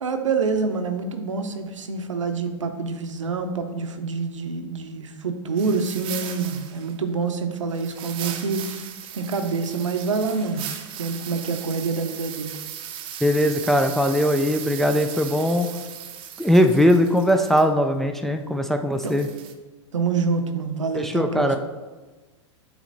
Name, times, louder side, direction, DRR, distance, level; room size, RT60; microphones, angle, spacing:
voice 1, 0.0-8.9 9.1-10.7 11.0-12.5 19.0-19.2 19.9-21.6, right 4 dB, 80° right, 7 dB, 0.7 m, -26 dB
sound 1, 5.5-7.0 7.7-17.7 19.0-19.5, right 9 dB, 35° right, 0.6 m, -37 dB
voice 2, 13.2-15.7 16.4-19.3 21.0-21.6, equal, ahead, 5 dB, 0.4 m, -20 dB
8.3 x 3.2 x 3.9 m, 1.2 s
hypercardioid pair, 100°, 16 cm